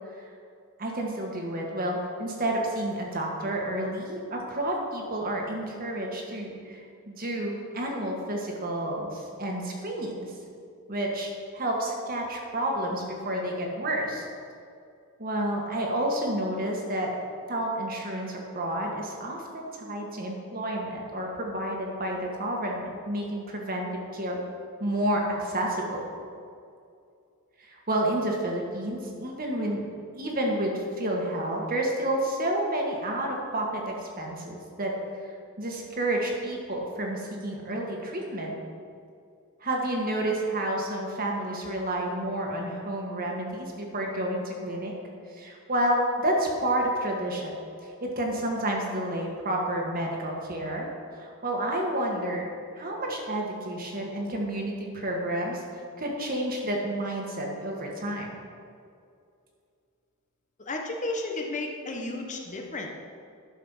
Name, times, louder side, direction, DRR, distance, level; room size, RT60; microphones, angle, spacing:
voice 1, 0.8-6.8 7.1-10.3 10.9-14.3 15.2-17.1 17.5-24.4 24.8-26.0 27.6-29.8 30.1-34.9 35.2-38.5 39.6-44.9 45.3-47.5 47.8-50.9 51.1-52.5 52.7-55.6 56.0-58.3, right 1 dB, 40° right, 0 dB, 1.7 m, -30 dB
voice 2, 60.6-62.9, left 2 dB, 35° left, 2 dB, 1.0 m, -33 dB
11.5 x 6.7 x 5.7 m, 2.4 s
head